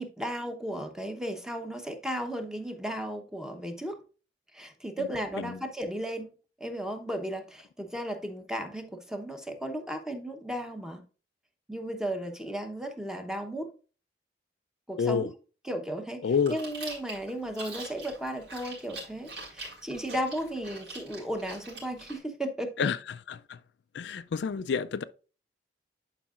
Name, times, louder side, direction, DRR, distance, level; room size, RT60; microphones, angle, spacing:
voice 1, 0.0-4.0 4.5-6.3 6.6-11.0 11.7-13.7 14.9-15.3 15.6-16.2 16.5-22.9, equal, 5° right, 0.9 m, -35 dB
voice 2, 15.0-15.3 16.2-16.6 22.8-23.6 23.9-25.0, left 6 dB, 80° left, 0.4 m, -29 dB
Chewing mastication, 16.3-22.2, right 2 dB, 80° right, 4.2 m, -44 dB
11.0 x 4.7 x 2.4 m
head